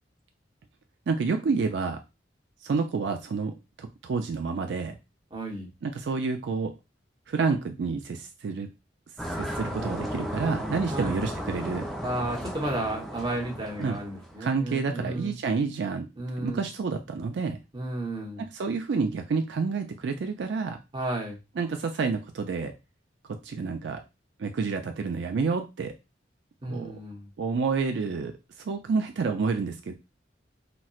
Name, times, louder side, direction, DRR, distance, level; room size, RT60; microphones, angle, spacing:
voice 1, 1.1-2.0 2.6-5.0 5.8-6.7 7.3-8.7 9.3-11.9 13.8-14.0 14.4-16.1 16.4-17.6 18.4-20.8 21.6-22.7 23.4-24.0 24.4-25.9 26.6-27.0 27.4-29.9, right 4 dB, 75° right, 6 dB, 0.4 m, -29 dB
voice 2, 5.3-5.7 10.9-11.2 12.0-15.3 16.2-16.6 17.7-18.5 20.9-21.4 26.6-27.3, right 1 dB, 25° right, -2 dB, 0.9 m, -33 dB
sound 1, 9.2-14.4, equal, ahead, 0.4 m, -35 dB
4.1 x 2.1 x 2.3 m, 0.25 s
head